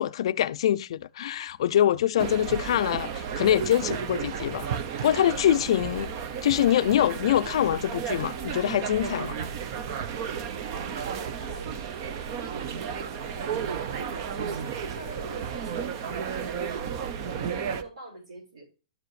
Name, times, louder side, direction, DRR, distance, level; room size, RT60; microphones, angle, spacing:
voice 1, 0.0-4.7 5.0-6.1 6.4-9.4, left 11 dB, 60° left, 0.4 m, -24 dB
sound 1, 2.2-17.8, right 7 dB, 35° right, 0.6 m, -33 dB
voice 2, 11.2-12.5 12.9-13.5 13.8-18.7, right 2 dB, 80° right, 5.3 m, -44 dB
12.0 x 4.8 x 3.1 m
hypercardioid pair, 170°, 3 cm